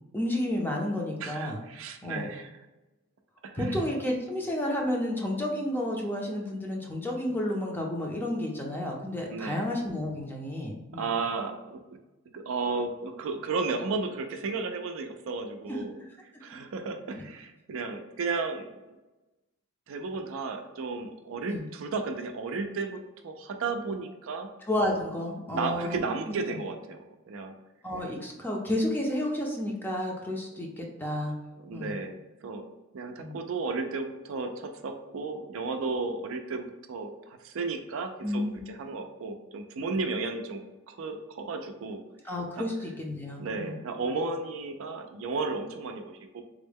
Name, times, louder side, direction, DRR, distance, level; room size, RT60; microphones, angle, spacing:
voice 1, 0.1-1.6 2.0-2.3 3.6-11.1 15.7-15.8 21.5-21.7 24.7-26.1 27.8-31.3 31.7-32.0 33.2-33.4 38.2-38.6 42.2-43.8, left 1 dB, 10° left, -1 dB, 0.5 m, -31 dB
voice 2, 1.2-2.5 3.4-3.8 9.3-9.6 10.9-11.8 12.3-16.0 16.4-18.7 19.9-24.5 25.5-27.0 27.3-27.5 31.6-32.7 32.9-40.6 40.9-42.0 42.6-42.7 43.4-46.4, right 4 dB, 65° right, 6 dB, 0.4 m, -33 dB
3.6 x 2.1 x 3.5 m, 1.1 s
head